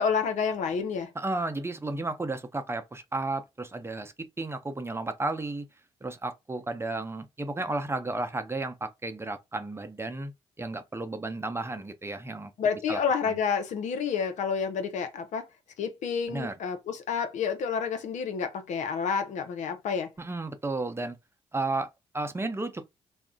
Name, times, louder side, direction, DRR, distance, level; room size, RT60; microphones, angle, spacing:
voice 1, 0.0-1.1 12.6-15.5 15.8-20.1, left 6 dB, 70° left, 0.6 m, -29 dB
voice 2, 1.1-5.7 6.0-10.3 10.6-12.5 12.9-13.4 16.3-16.5 20.2-21.2 21.5-22.8, right 2 dB, 20° right, 0.6 m, -33 dB
2.4 x 2.1 x 3.7 m
supercardioid pair, 55°, 13 cm